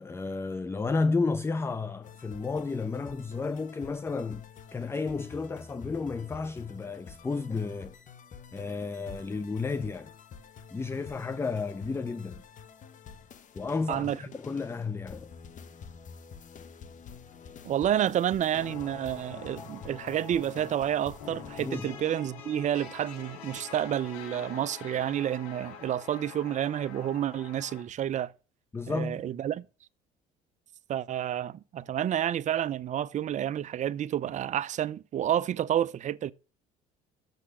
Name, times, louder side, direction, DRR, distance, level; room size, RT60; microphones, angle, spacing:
voice 1, 0.0-4.5 4.7-8.0 8.5-10.1 10.7-12.4 13.5-15.3 21.6-21.9 28.7-29.2, left 4 dB, 15° left, 0.5 m, -32 dB
sound 1, 2.0-21.8, left 6 dB, 45° left, 1.1 m, -48 dB
voice 2, 17.6-28.3 28.9-29.6 30.9-36.3, right 10 dB, 45° right, 0.5 m, -29 dB
sound 2, 18.5-27.8, left 7 dB, 90° left, 2.0 m, -46 dB
6.9 x 6.6 x 6.3 m
supercardioid pair, 90°, 18 cm